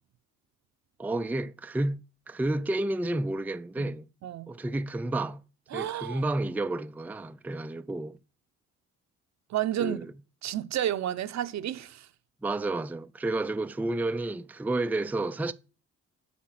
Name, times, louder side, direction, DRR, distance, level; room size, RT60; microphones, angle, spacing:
voice 1, 1.0-4.1 4.5-5.4 5.7-8.2 9.8-10.1 12.4-15.5, right 2 dB, 5° right, 0.4 m, -31 dB
voice 2, 4.2-4.5 5.7-6.2 9.5-10.0 10.4-12.1, right 12 dB, 65° right, 0.8 m, -31 dB
8.6 x 5.8 x 5.9 m
cardioid pair, 90°, 30 cm